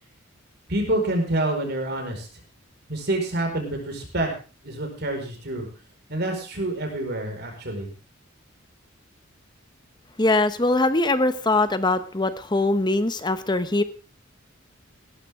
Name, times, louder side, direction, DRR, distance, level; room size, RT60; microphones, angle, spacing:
voice 1, 0.7-2.3 2.9-4.3 4.6-5.7 6.1-7.9, right 1 dB, 55° right, 3 dB, 4.8 m, -27 dB
voice 2, 10.2-13.8, left 2 dB, 20° left, 12 dB, 0.9 m, -22 dB
17.0 x 13.5 x 3.6 m, 0.35 s
head